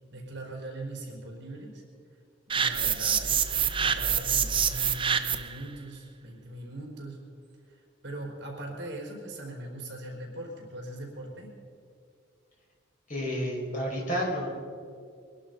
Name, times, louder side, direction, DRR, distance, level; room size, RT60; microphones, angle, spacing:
voice 1, 0.1-1.8 2.5-3.5 3.8-7.2 7.7-11.5, right 1 dB, 65° right, 0 dB, 4.3 m, -40 dB
sound 1, 2.5-5.6, right 8 dB, 25° right, 0.7 m, -26 dB
sound 2, 3.0-5.4, right 1 dB, 10° left, 3.4 m, -41 dB
voice 2, 13.1-14.5, equal, 45° left, -3 dB, 4.9 m, -30 dB
23.0 x 11.5 x 5.3 m, 2.3 s
head